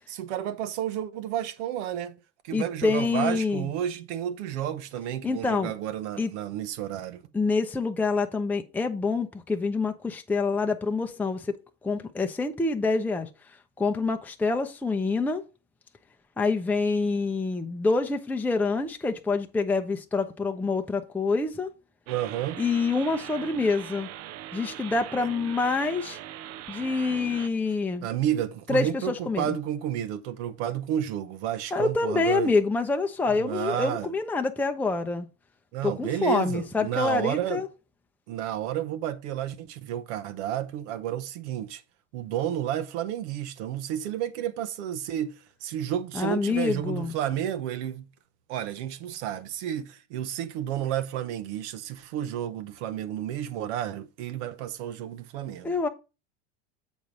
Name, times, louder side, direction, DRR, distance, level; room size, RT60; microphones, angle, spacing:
voice 1, 0.1-2.2 2.4-7.2 22.1-22.6 25.2-25.3 28.0-32.5 33.3-34.1 35.7-37.6 38.3-41.8 42.1-48.0 48.5-55.7, right 11 dB, 70° right, 1.0 m, -31 dB
voice 2, 2.5-3.7 5.2-5.7 6.2-6.3 7.3-11.6 11.8-13.3 13.8-15.4 16.4-21.7 22.6-24.1 24.5-26.2 26.7-28.1 28.7-29.5 31.7-35.3 35.8-37.7 46.1-47.1 55.6-55.9, left 3 dB, 5° left, 0.6 m, -26 dB
sound 1, 22.1-27.5, right 12 dB, 40° right, 0.6 m, -41 dB
7.2 x 4.7 x 5.2 m
hypercardioid pair, 105°, 37 cm